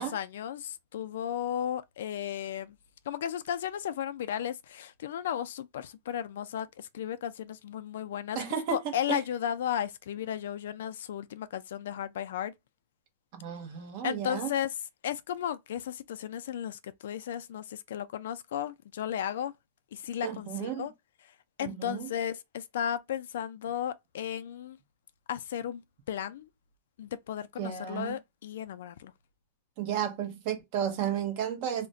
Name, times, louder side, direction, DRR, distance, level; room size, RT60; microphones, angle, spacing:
voice 1, 0.0-2.8 3.1-8.4 8.7-12.5 14.0-14.7 15.0-19.5 19.9-20.9 21.6-24.8 25.3-25.8 26.1-26.5 27.0-29.1, left 10 dB, 75° left, 0.3 m, -34 dB
voice 2, 8.3-9.2 13.3-14.5 20.2-20.9 21.6-22.1 27.6-28.2 29.8-31.9, right 9 dB, 40° right, 0.8 m, -33 dB
2.4 x 2.1 x 3.7 m
supercardioid pair, 180°, 0 cm